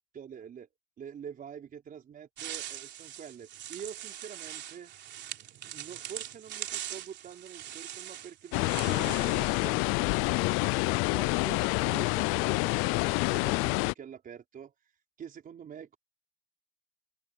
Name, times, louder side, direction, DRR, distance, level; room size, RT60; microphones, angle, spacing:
voice 1, 0.1-0.7 1.0-4.9 5.7-10.2 10.6-14.7 15.2-16.0, right 8 dB, 45° right, 5.0 m, -46 dB
sound 1, 2.4-9.7, right 12 dB, 60° right, 3.2 m, -42 dB
sound 2, 8.5-13.9, left 26 dB, 90° left, 0.4 m, -27 dB
open air
cardioid pair, 115°, 21 cm